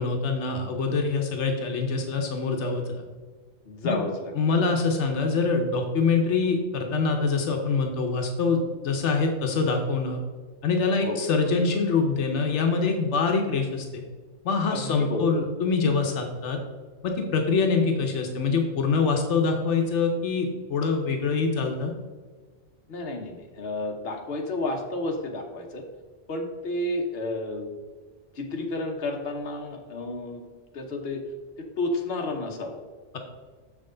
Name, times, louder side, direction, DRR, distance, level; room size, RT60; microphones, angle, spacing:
voice 1, 0.0-3.0 3.8-4.0 4.4-10.2 10.6-14.0 14.4-16.6 17.0-21.9, left 4 dB, 85° left, 3 dB, 1.1 m, -25 dB
voice 2, 3.6-4.7 11.0-11.2 14.7-15.4 22.9-25.8 26.3-27.7 28.3-30.4 30.7-31.2 31.6-32.8, left 2 dB, 60° left, 2 dB, 1.2 m, -31 dB
6.7 x 6.1 x 3.8 m, 1.4 s
omnidirectional pair, 1.2 m